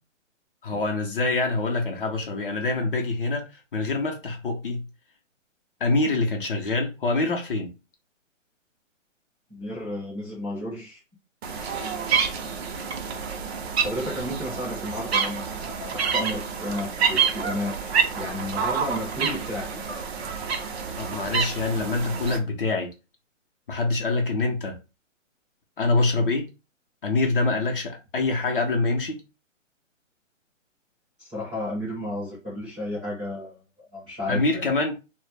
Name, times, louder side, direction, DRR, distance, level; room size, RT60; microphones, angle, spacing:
voice 1, 0.6-4.8 5.8-7.7 21.0-22.9 23.7-24.8 25.8-26.5 27.0-29.2 34.3-34.9, left 3 dB, 45° left, 0.5 m, -25 dB
voice 2, 9.5-11.0 12.4-12.5 13.8-19.9 31.2-33.6 33.9-34.6, left 1 dB, 5° right, 0.5 m, -33 dB
sound 1, 11.4-22.4, right 6 dB, 55° right, 0.6 m, -28 dB
2.0 x 2.0 x 3.2 m
hypercardioid pair, 160°, 39 cm